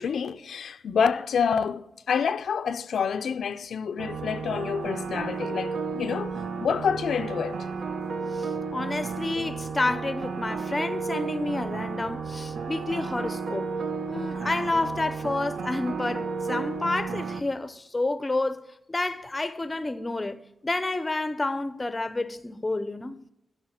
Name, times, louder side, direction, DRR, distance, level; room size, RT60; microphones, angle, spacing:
voice 1, 0.0-7.7, left 6 dB, 75° left, 0.5 m, -28 dB
sound 1, 4.0-17.4, right 4 dB, 70° right, 1.2 m, -33 dB
voice 2, 8.3-13.7 14.1-18.6 18.9-23.2, left 2 dB, 20° left, 0.6 m, -29 dB
12.5 x 5.6 x 7.3 m
wide cardioid pair, 160°, 0 cm